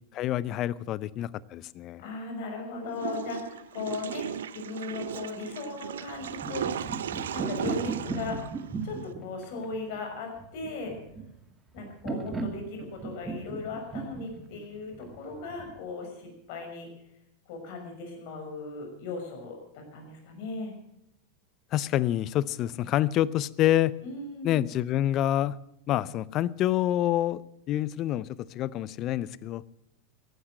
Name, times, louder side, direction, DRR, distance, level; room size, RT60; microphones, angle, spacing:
voice 1, 0.1-2.0 21.7-23.9 24.4-25.6 25.9-27.4 27.7-29.6, left 13 dB, 45° left, 21 dB, 0.6 m, -27 dB
voice 2, 2.0-6.7 7.3-8.4 8.8-10.9 11.7-16.9 17.5-20.8 24.0-24.7, left 3 dB, 60° left, 3 dB, 6.0 m, -37 dB
Water / Toilet flush, 2.9-9.1, right 9 dB, 75° right, 0.6 m, -36 dB
sound 1, 6.1-15.8, right 4 dB, 20° right, 2.5 m, -37 dB
15.0 x 12.0 x 7.6 m, 0.82 s
hypercardioid pair, 95°, 0 cm